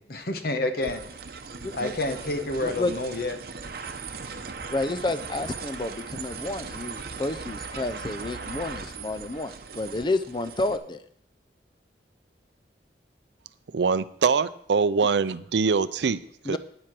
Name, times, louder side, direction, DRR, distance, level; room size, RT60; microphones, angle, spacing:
voice 1, 0.1-1.0 1.7-3.3, left 2 dB, 55° left, 7 dB, 1.1 m, -28 dB
sound 1, 0.8-10.8, right 4 dB, 55° right, 0.9 m, -39 dB
voice 2, 2.6-2.9 4.7-11.0 16.5-16.6, left 2 dB, 25° left, 12 dB, 0.5 m, -30 dB
voice 3, 13.7-16.6, right 5 dB, 75° right, 15 dB, 0.5 m, -24 dB
10.0 x 7.7 x 6.0 m, 0.67 s
head